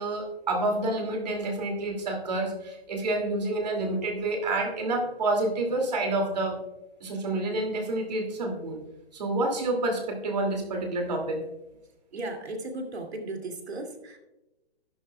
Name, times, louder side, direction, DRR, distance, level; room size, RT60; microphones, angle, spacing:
voice 1, 0.0-6.6 7.0-8.8 9.1-11.4, right 2 dB, 40° right, 2 dB, 2.3 m, -28 dB
voice 2, 12.1-14.2, right 2 dB, 85° right, 3 dB, 2.4 m, -36 dB
12.0 x 11.5 x 2.2 m, 0.99 s
hypercardioid pair, 175°, 32 cm